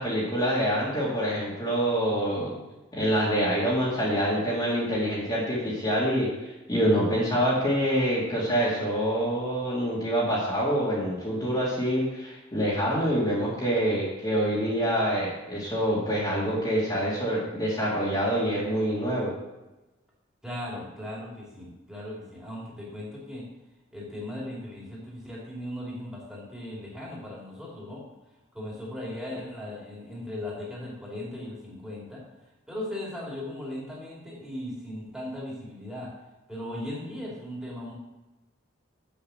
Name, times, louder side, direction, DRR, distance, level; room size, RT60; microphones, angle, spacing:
voice 1, 0.0-2.6 2.9-19.3, equal, 20° left, -8 dB, 2.4 m, -26 dB
voice 2, 20.4-23.4 23.9-28.0 28.5-32.2 32.7-36.1 36.5-37.9, left 1 dB, 5° right, -6 dB, 2.9 m, -37 dB
7.8 x 7.0 x 6.4 m, 1.0 s
head